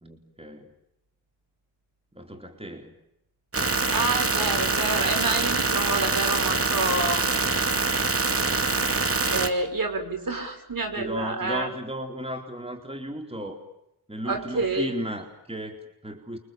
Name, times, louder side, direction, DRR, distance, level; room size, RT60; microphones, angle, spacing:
voice 1, 0.0-0.7 2.1-3.0 11.0-13.6 14.1-16.4, equal, 10° right, 4 dB, 4.0 m, -35 dB
sound 1, 3.5-9.5, right 3 dB, 30° right, 2.5 m, -24 dB
voice 2, 3.9-7.5 9.3-11.7 14.3-14.9, right 3 dB, 45° right, 6 dB, 6.2 m, -28 dB
29.5 x 24.0 x 7.6 m, 0.84 s
supercardioid pair, 45°, 49 cm